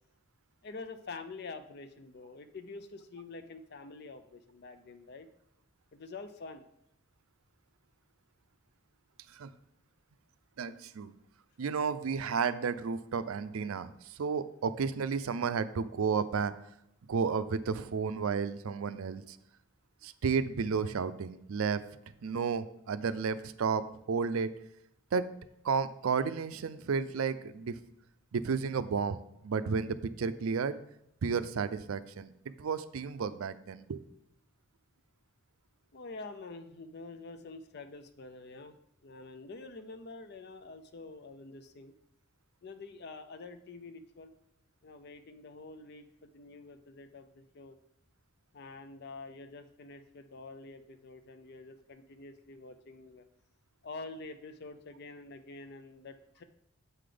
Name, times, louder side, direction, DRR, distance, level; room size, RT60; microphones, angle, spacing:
voice 1, 0.6-5.3 5.9-6.7 35.9-38.8 39.0-41.9 42.6-44.3 44.8-47.8 48.5-53.2 53.8-56.4, left 3 dB, 50° left, 9 dB, 0.5 m, -47 dB
voice 2, 10.6-11.1 11.6-16.5 17.1-19.4 20.0-21.8 22.2-24.5 25.1-25.3 25.6-27.8 28.3-30.8 31.2-32.3 32.6-34.0, right 5 dB, 75° right, 13 dB, 0.4 m, -32 dB
7.7 x 3.9 x 5.0 m, 0.77 s
head